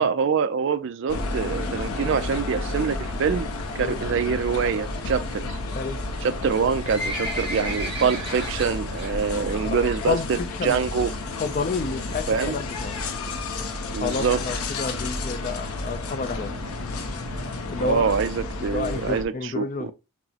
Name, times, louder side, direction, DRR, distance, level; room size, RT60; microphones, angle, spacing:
voice 1, 0.0-3.5 3.7-5.6 6.2-11.1 12.3-12.6 13.9-14.4 17.8-19.9, right 6 dB, 55° right, 0.3 m, -25 dB
sound 1, 1.1-19.2, left 2 dB, 80° left, 0.6 m, -31 dB
Livestock farm animals working animals, 6.5-9.1 9.5-9.8 10.1-10.2 10.8-10.9 11.2-11.3 11.5-11.6 12.1-12.4 13.0-13.1 13.3-13.4 13.6-13.7 13.9-14.0 14.4-14.5 15.0-15.1 15.6-15.7, right 1 dB, 25° right, 1.4 m, -33 dB
voice 2, 11.4-12.9 14.0-16.6 17.7-18.1 18.6-19.9, left 4 dB, 35° left, 0.3 m, -30 dB
6.0 x 2.0 x 2.8 m
head